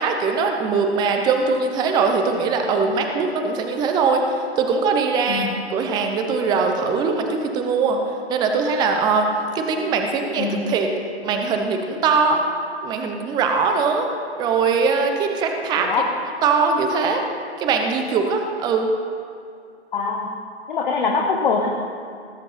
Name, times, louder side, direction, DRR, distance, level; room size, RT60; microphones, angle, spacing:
voice 1, 0.0-4.2 4.6-8.0 8.3-9.3 9.5-10.9 11.2-12.4 12.8-14.1 14.4-15.9 16.4-17.2 17.6-18.9, right 5 dB, 10° right, 4 dB, 0.8 m, -21 dB
voice 2, 5.3-5.6 10.4-10.8 15.8-16.1 19.9-20.3 20.7-21.7, left 4 dB, 45° left, 2 dB, 1.3 m, -23 dB
19.0 x 8.0 x 5.7 m, 2.4 s
figure-of-eight pair, 125°, 33 cm